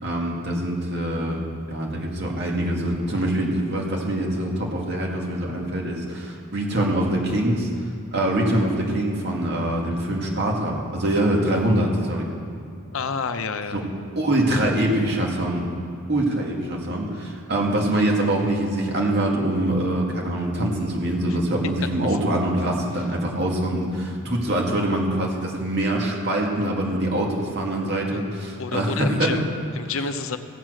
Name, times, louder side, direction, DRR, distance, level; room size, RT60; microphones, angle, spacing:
voice 1, 0.0-7.7 8.1-12.3 13.7-13.8 14.2-15.7 16.1-29.4, right 1 dB, 50° right, -1 dB, 2.1 m, -24 dB
voice 2, 12.9-13.8 21.3-21.4 28.6-29.4 29.7-30.4, left 5 dB, 65° left, 10 dB, 0.6 m, -28 dB
16.5 x 7.4 x 6.4 m, 2.4 s
head